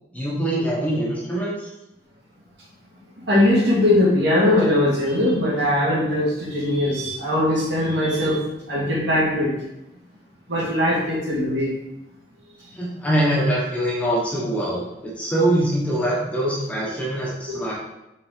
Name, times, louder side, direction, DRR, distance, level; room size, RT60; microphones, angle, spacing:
voice 1, 0.1-1.7 12.7-17.7, right 1 dB, 5° left, -6 dB, 1.2 m, -23 dB
voice 2, 3.2-8.4 8.7-9.6 10.5-11.7 17.5-17.6, left 1 dB, 65° right, -6 dB, 2.3 m, -20 dB
5.7 x 4.1 x 4.6 m, 0.92 s
head